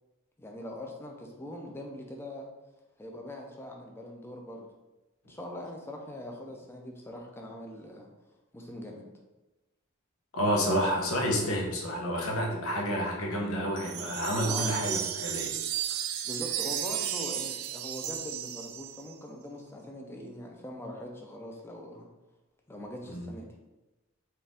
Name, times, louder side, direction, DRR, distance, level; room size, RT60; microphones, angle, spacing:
voice 1, 0.4-2.5 3.0-4.7 5.2-8.1 8.5-9.1 14.5-14.7 16.2-22.1 22.7-23.5, left 1 dB, 10° left, 1 dB, 0.5 m, -42 dB
voice 2, 10.3-15.5 23.1-23.3, equal, 80° left, -1 dB, 0.9 m, -29 dB
sound 1, 13.8-19.1, right 10 dB, 80° right, 0.3 m, -34 dB
4.4 x 2.5 x 3.5 m, 1.1 s
head